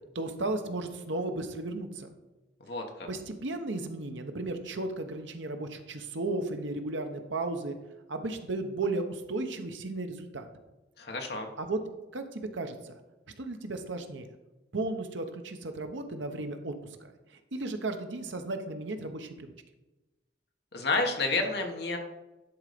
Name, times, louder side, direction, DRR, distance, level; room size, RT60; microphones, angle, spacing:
voice 1, 0.1-2.1 3.1-7.8 8.1-10.5 11.6-11.8 12.1-12.7 13.4-14.3 14.7-16.7 17.0-17.1 17.5-19.5, right 2 dB, 75° right, 6 dB, 0.9 m, -34 dB
voice 2, 2.7-3.1 11.0-11.5 20.7-22.0, left 3 dB, 55° left, 3 dB, 1.3 m, -30 dB
11.0 x 4.0 x 5.1 m, 1.1 s
head